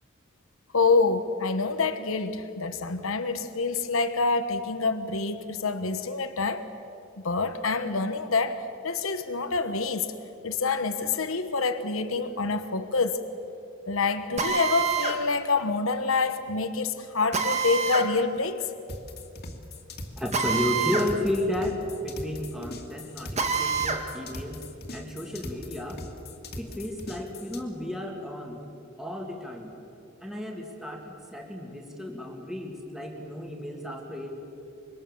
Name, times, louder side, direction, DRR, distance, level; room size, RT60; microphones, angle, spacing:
voice 1, 0.7-6.6 7.2-10.1 10.4-13.2 13.9-18.7, left 4 dB, 75° left, 9 dB, 1.2 m, -27 dB
Drill, 14.4-15.2 17.3-18.1 20.3-21.1 21.5-21.6 23.4-24.0, right 5 dB, 30° right, 1.7 m, -26 dB
sound 1, 18.9-27.6, left 1 dB, 50° left, 2.3 m, -41 dB
voice 2, 20.2-24.6 24.9-26.0 26.5-28.6 29.0-29.7 30.2-34.3, left 1 dB, ahead, 0 dB, 2.5 m, -33 dB
26.0 x 23.5 x 7.2 m, 2.8 s
head